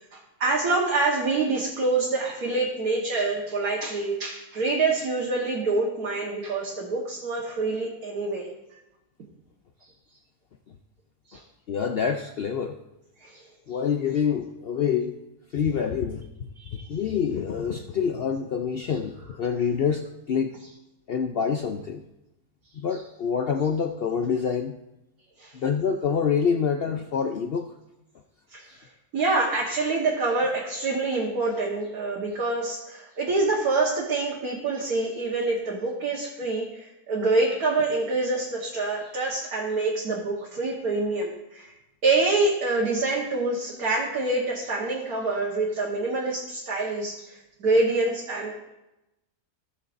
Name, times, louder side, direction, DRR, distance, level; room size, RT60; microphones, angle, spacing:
voice 1, 0.0-8.5 11.3-11.4 13.2-13.4 16.6-16.9 25.4-25.6 28.5-28.9 29.1-41.7 42.0-48.7, right 3 dB, 70° right, -4 dB, 1.8 m, -26 dB
voice 2, 11.7-12.8 13.7-15.2 15.5-16.3 16.7-20.5 21.1-22.0 22.7-24.8 25.5-27.7, left 7 dB, 80° left, 5 dB, 0.5 m, -26 dB
16.5 x 6.3 x 2.6 m, 0.93 s
omnidirectional pair, 1.7 m